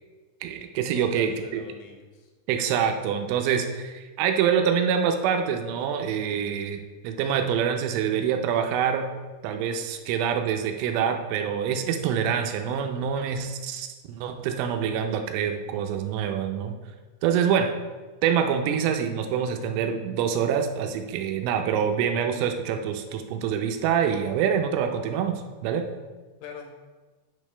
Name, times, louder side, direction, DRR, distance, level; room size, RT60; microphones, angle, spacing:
voice 1, 0.4-1.6 2.5-9.1 9.4-16.8 17.2-17.7 18.2-25.8, right 8 dB, 85° right, 6 dB, 2.9 m, -26 dB
voice 2, 0.9-2.3 26.4-26.7, left 6 dB, 80° left, 3 dB, 2.9 m, -42 dB
9.2 x 5.4 x 3.2 m, 1.3 s
omnidirectional pair, 5.8 m